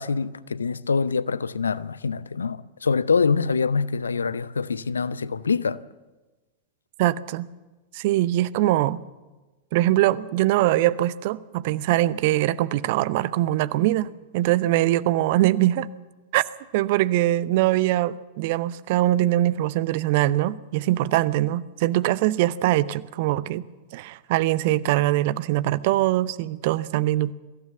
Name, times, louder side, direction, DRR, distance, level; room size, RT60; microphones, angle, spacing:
voice 1, 0.0-5.8, left 5 dB, 75° left, 0.7 m, -25 dB
voice 2, 7.0-7.5 7.9-9.0 9.7-15.9 16.3-16.4 16.7-23.6 23.9-27.3, right 15 dB, 50° right, 0.7 m, -22 dB
23.0 x 15.5 x 7.5 m
figure-of-eight pair, 90°, 0 cm